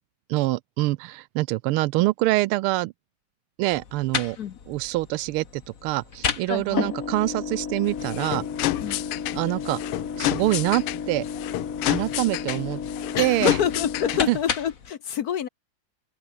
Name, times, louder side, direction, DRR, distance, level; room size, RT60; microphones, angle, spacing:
voice 1, 0.3-2.9 3.6-4.4 4.7-8.4 9.3-9.8 10.2-11.2 11.9-12.8 13.2-13.6 14.3-14.4, right 18 dB, 80° right, 1.4 m, -25 dB
sound 1, 3.7-14.9, left 6 dB, 40° left, 1.8 m, -32 dB
voice 2, 6.5-6.9 8.8-9.0 13.1-15.5, left 9 dB, 60° left, 1.1 m, -27 dB
sound 2, 7.9-14.4, left 16 dB, 85° left, 1.6 m, -30 dB
open air
omnidirectional pair, 2.4 m